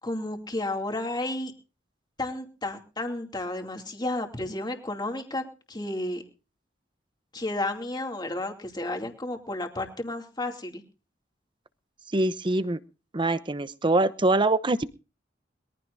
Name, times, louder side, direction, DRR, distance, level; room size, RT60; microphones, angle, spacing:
voice 1, 0.0-1.5 2.2-5.4 5.7-6.2 7.3-10.8, left 2 dB, 25° left, 3 dB, 2.7 m, -32 dB
voice 2, 12.1-12.8 13.1-15.0, right 2 dB, 25° right, 14 dB, 0.8 m, -24 dB
22.0 x 15.0 x 2.7 m, 0.34 s
head